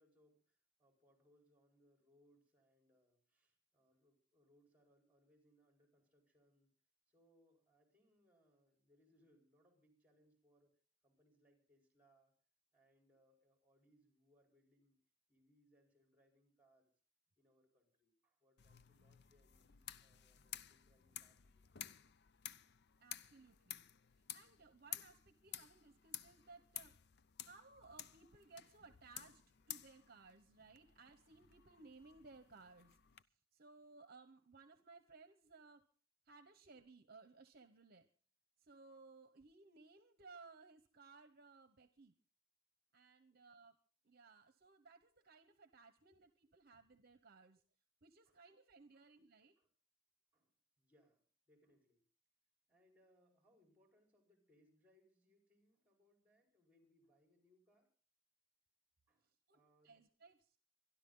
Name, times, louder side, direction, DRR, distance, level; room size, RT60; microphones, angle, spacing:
voice 1, 0.0-6.7 7.1-12.3 12.7-15.0 15.3-16.9 17.4-21.8 43.3-43.4 46.1-46.3 46.7-46.8 48.3-48.4 48.9-49.1 49.6-49.7 50.3-52.0 52.7-57.9 59.1-60.0, equal, 10° right, 3 dB, 4.6 m, -75 dB
sound 1, 18.6-33.2, left 11 dB, 55° left, 0.6 m, -54 dB
voice 2, 23.0-23.9 24.3-26.9 27.4-33.0 33.5-35.9 36.3-38.1 38.6-42.1 42.9-43.8 44.0-47.6 48.0-49.5 59.5-60.6, right 4 dB, 50° right, 10 dB, 1.1 m, -61 dB
25.5 x 11.5 x 3.9 m, 0.41 s
head